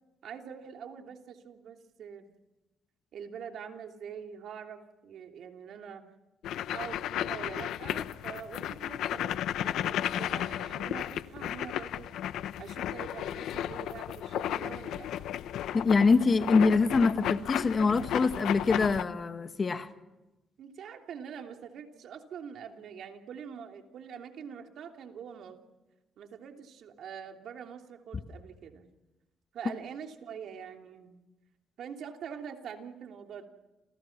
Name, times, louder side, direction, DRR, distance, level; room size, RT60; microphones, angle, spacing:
voice 1, 0.2-2.3 3.1-6.0 6.7-12.1 12.6-15.3 20.6-25.6 26.2-28.9 29.5-31.2 31.8-33.4, right 7 dB, 70° right, 3 dB, 3.1 m, -44 dB
sound 1, 6.4-19.0, left 11 dB, 80° left, 0.8 m, -34 dB
voice 2, 15.7-19.9, left 4 dB, 35° left, 9 dB, 1.7 m, -24 dB
29.0 x 28.5 x 6.0 m, 1.0 s
cardioid pair, 90°, 0 cm